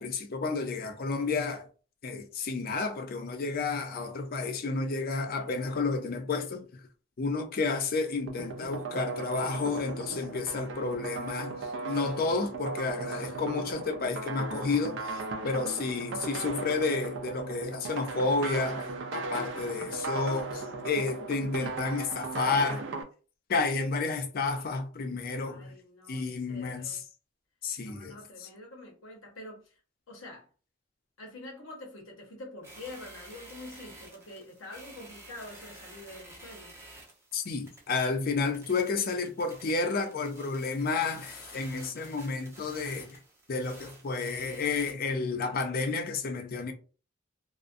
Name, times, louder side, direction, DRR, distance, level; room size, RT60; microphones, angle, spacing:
voice 1, 0.0-1.7 2.0-6.8 7.2-11.5 11.8-22.9 23.5-25.7 26.1-27.0 27.6-28.1 28.4-28.5 37.3-43.2 43.5-46.7, left 4 dB, 50° left, 0.4 m, -31 dB
sound 1, 8.3-23.0, right 3 dB, 65° right, 0.4 m, -37 dB
voice 2, 25.4-27.0 27.8-29.8 30.1-30.5 31.2-36.8, left 2 dB, 85° left, 0.8 m, -46 dB
sound 2, 32.6-44.9, right 2 dB, 15° right, 0.6 m, -51 dB
2.4 x 2.1 x 2.5 m
head